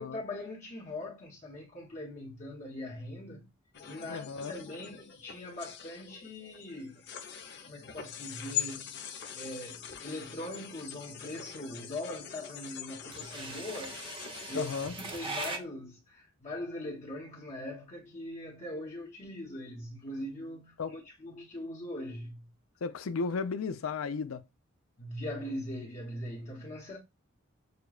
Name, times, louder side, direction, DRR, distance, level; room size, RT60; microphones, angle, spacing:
voice 1, 0.0-3.5 3.9-7.1 7.7-9.0 9.3-14.0 14.5-22.5 25.0-27.0, left 1 dB, 35° left, 1.0 m, -41 dB
sound 1, 3.7-14.9, left 10 dB, 55° left, 0.8 m, -43 dB
voice 2, 4.1-4.5 14.5-15.0 20.8-21.0 22.8-24.4, left 5 dB, 75° left, 0.5 m, -34 dB
sound 2, 9.3-15.6, right 3 dB, 25° right, 0.8 m, -42 dB
6.6 x 2.3 x 2.3 m
head